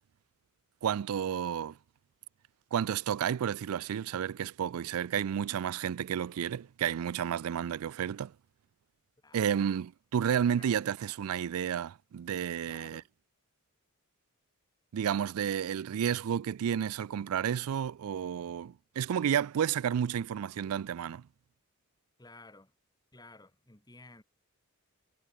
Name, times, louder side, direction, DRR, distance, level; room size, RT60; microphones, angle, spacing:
voice 1, 0.8-1.8 2.7-8.3 9.3-13.0 14.9-21.2, right 8 dB, 75° right, 0.3 m, -31 dB
voice 2, 9.2-9.6 10.5-10.9 12.6-13.1 22.2-22.7 23.1-24.2, left 2 dB, 15° left, 2.0 m, -54 dB
head